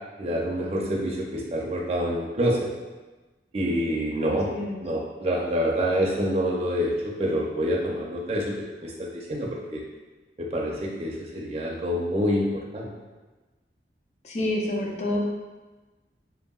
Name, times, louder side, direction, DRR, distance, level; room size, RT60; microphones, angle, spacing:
voice 1, 0.2-2.7 3.5-4.5 4.8-8.5 8.8-9.8 10.4-12.9, equal, 35° right, -2 dB, 0.4 m, -27 dB
voice 2, 4.3-4.8 14.2-15.2, left 1 dB, 40° left, -1 dB, 0.4 m, -28 dB
2.9 x 2.7 x 2.3 m, 1.2 s
head